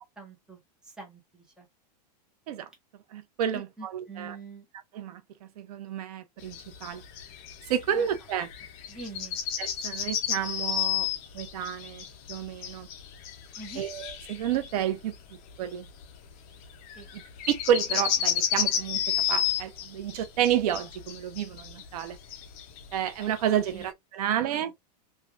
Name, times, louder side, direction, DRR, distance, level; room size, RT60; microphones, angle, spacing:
voice 1, 0.0-1.7 3.5-4.7 7.9-8.1 8.9-9.4 13.6-13.9 16.9-17.1 23.7-23.9 24.2-24.7, right 3 dB, 5° right, 0.8 m, -45 dB
voice 2, 3.1-4.4 4.9-7.0 7.7-8.5 9.6-12.9 13.8-15.1 15.6-15.9 17.5-22.2 22.9-24.7, right 10 dB, 65° right, 0.6 m, -30 dB
sound 1, 6.4-23.8, left 9 dB, 35° left, 0.6 m, -32 dB
3.2 x 2.3 x 2.4 m
supercardioid pair, 165°, 21 cm